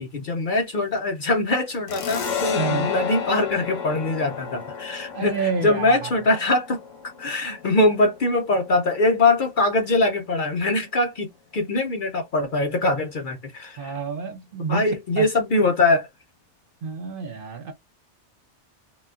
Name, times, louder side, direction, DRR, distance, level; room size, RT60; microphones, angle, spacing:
voice 1, 0.0-11.3 11.5-13.9 14.7-16.1, left 2 dB, 55° left, 0.6 m, -22 dB
sound 1, 1.9-9.1, left 7 dB, 85° left, 1.1 m, -32 dB
voice 2, 2.5-2.9 5.1-6.1 13.8-15.3 16.8-17.7, right 5 dB, 55° right, 0.7 m, -28 dB
3.9 x 2.2 x 2.4 m
omnidirectional pair, 1.2 m